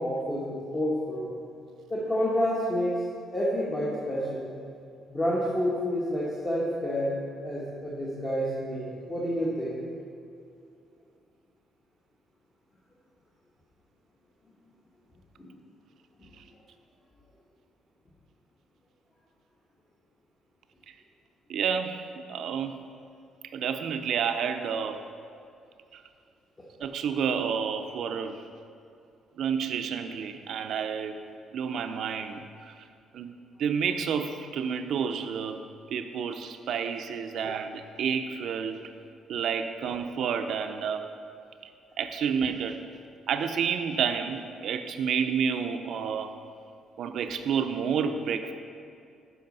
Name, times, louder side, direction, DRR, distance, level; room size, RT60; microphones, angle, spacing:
voice 1, 0.0-1.3 1.9-3.0 3.3-4.5 5.1-7.1 7.4-9.8 15.4-15.5, equal, 20° left, -6 dB, 1.2 m, -29 dB
voice 2, 21.5-22.9 23.5-25.0 25.9-26.0 26.8-28.4 29.4-31.2 31.5-32.7 33.1-33.3 33.6-35.6 35.9-38.8 39.3-41.1 42.0-42.8 43.3-46.4 47.0-48.5, right 7 dB, 65° right, 8 dB, 0.5 m, -30 dB
7.7 x 5.1 x 5.3 m, 2.5 s
cardioid pair, 110°, 0 cm